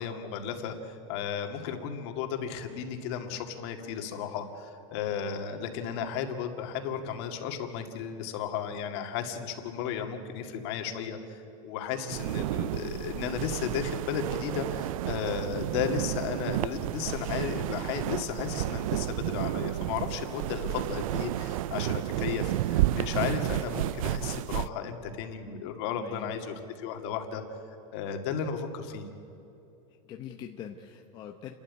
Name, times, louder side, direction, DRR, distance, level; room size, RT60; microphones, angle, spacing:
voice 1, 0.0-27.4 27.9-29.1, left 7 dB, 45° left, 5 dB, 2.2 m, -34 dB
sound 1, 12.1-24.7, right 14 dB, 70° right, 0.5 m, -31 dB
voice 2, 25.9-26.3 30.0-31.5, left 9 dB, 25° left, 3 dB, 0.8 m, -43 dB
29.5 x 12.5 x 9.6 m, 2.8 s
supercardioid pair, 175°, 18 cm